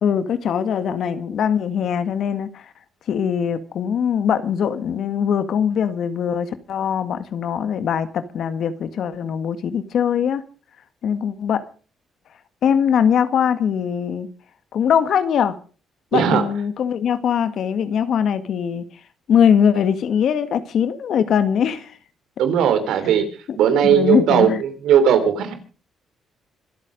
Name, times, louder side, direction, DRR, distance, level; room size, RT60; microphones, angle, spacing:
voice 1, 0.0-2.7 3.1-10.4 11.0-11.6 12.6-14.3 14.7-15.6 16.1-18.9 19.3-22.0 22.9-23.2 23.5-24.6, left 8 dB, 65° left, 1.7 m, -21 dB
voice 2, 16.1-16.4 22.4-23.2 23.6-24.5 24.8-25.5, right 9 dB, 85° right, 3.4 m, -17 dB
25.5 x 8.6 x 5.2 m
cardioid pair, 90°, 0 cm